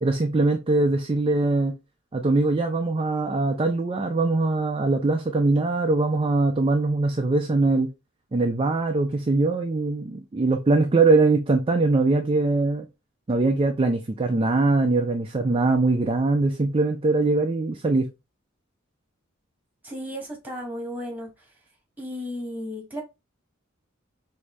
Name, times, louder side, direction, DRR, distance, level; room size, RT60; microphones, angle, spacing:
voice 1, 0.0-1.7 2.1-7.9 8.3-12.9 13.3-18.1, right 3 dB, 25° right, 0.4 m, -22 dB
voice 2, 19.8-21.5 22.0-23.0, equal, 10° right, 1.4 m, -34 dB
4.8 x 2.7 x 3.1 m
head